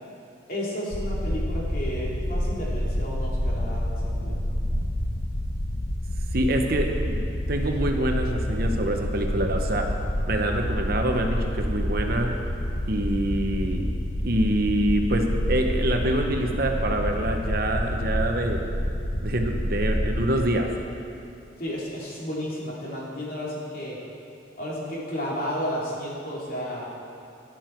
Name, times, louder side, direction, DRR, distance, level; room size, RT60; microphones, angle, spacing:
voice 1, 0.5-4.4 21.6-24.0 24.6-26.9, equal, 50° left, -5 dB, 2.8 m, -32 dB
sound 1, 0.9-20.5, equal, 75° left, 1.2 m, -28 dB
voice 2, 6.3-9.9 10.3-12.3 12.9-13.9 14.2-18.6 19.2-20.7, right 1 dB, 55° right, 3 dB, 1.0 m, -26 dB
12.5 x 11.0 x 4.6 m, 2.8 s
head